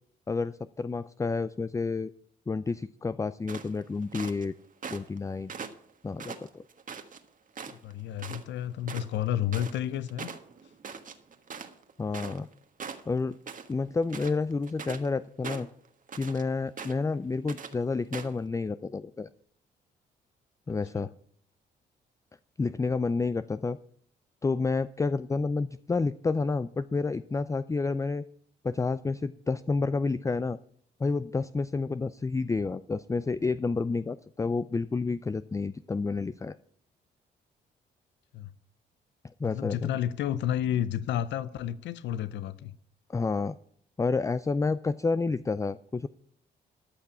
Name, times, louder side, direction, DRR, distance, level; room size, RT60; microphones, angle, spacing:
voice 1, 0.3-2.1 2.5-4.5 4.9-5.6 6.0-6.6 12.0-12.5 13.1-13.4 13.7-15.7 16.1-19.3 20.7-21.1 22.6-23.8 24.4-28.2 28.6-30.6 31.0-36.6 39.4-39.9 43.1-43.5 44.0-46.1, left 4 dB, 15° left, 0.4 m, -29 dB
sound 1, 3.5-4.5 4.8-5.2 5.5-7.2 7.5-7.9 8.2-8.4 8.7-12.5 12.8-13.7 14.0-15.1 15.4-16.4 16.8-17.1 17.5-17.7 18.1-18.4, right 6 dB, 45° right, 1.4 m, -41 dB
voice 2, 7.7-10.3 20.7-21.1 38.3-38.5 39.4-42.8, left 11 dB, 75° left, 0.6 m, -31 dB
13.5 x 5.8 x 8.3 m
supercardioid pair, 65°, 19 cm